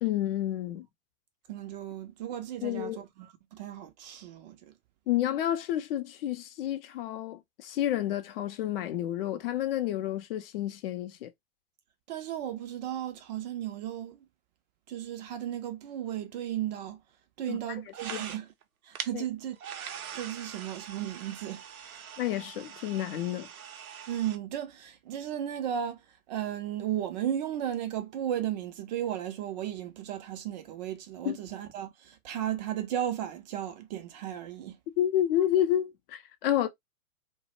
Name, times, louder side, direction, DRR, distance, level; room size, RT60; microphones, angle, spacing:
voice 1, 0.0-0.9 2.6-3.0 5.1-11.3 17.5-17.6 18.1-18.2 19.1-19.2 22.2-23.5 31.3-31.4 35.0-36.7, left 12 dB, 45° left, 0.5 m, -30 dB
voice 2, 1.5-4.7 12.1-14.3 14.9-17.0 17.4-18.5 18.8-19.6 20.1-21.6 21.9-22.0 24.1-34.8, right 11 dB, 35° right, 0.4 m, -35 dB
sound 1, 17.9-18.6 19.0-19.1 19.5-24.4, right 8 dB, 80° right, 0.6 m, -42 dB
2.1 x 2.1 x 2.9 m
figure-of-eight pair, 100°, 42 cm